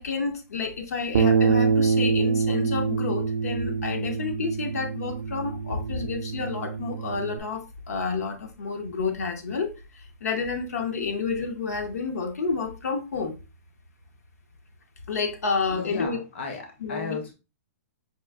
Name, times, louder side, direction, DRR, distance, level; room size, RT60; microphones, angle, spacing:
voice 1, 0.0-13.3 15.1-16.2 16.8-17.2, left 4 dB, 80° left, 0.8 m, -30 dB
Bass guitar, 1.1-7.4, right 5 dB, 55° right, 0.4 m, -25 dB
voice 2, 15.7-17.3, left 4 dB, 45° left, 0.7 m, -35 dB
5.3 x 2.5 x 2.3 m
hypercardioid pair, 175°, 8 cm